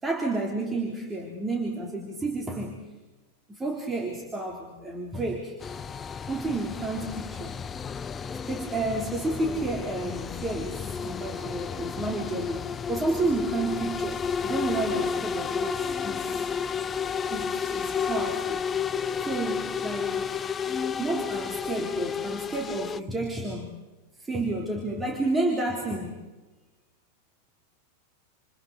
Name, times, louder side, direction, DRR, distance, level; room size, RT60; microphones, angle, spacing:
voice 1, 0.0-2.8 3.5-5.6 6.2-7.6 8.5-16.5 17.3-18.6 19.2-20.2 21.0-23.8 24.2-26.3, right 2 dB, 15° right, 1 dB, 3.5 m, -31 dB
sound 1, 5.6-23.0, left 6 dB, 20° left, 0.7 m, -32 dB
29.0 x 28.0 x 4.1 m, 1.1 s
figure-of-eight pair, 90°, 0 cm